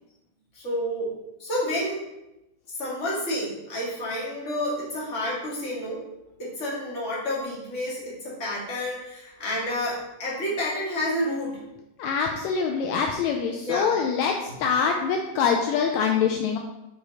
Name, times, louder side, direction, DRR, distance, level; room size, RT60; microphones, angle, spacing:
voice 1, 0.5-1.1 1.4-2.0 2.8-6.0 6.4-11.6 13.6-13.9, left 1 dB, 25° left, -6 dB, 1.8 m, -29 dB
voice 2, 12.0-16.6, left 6 dB, 85° left, 3 dB, 1.6 m, -24 dB
6.6 x 4.7 x 4.1 m, 0.91 s
omnidirectional pair, 3.8 m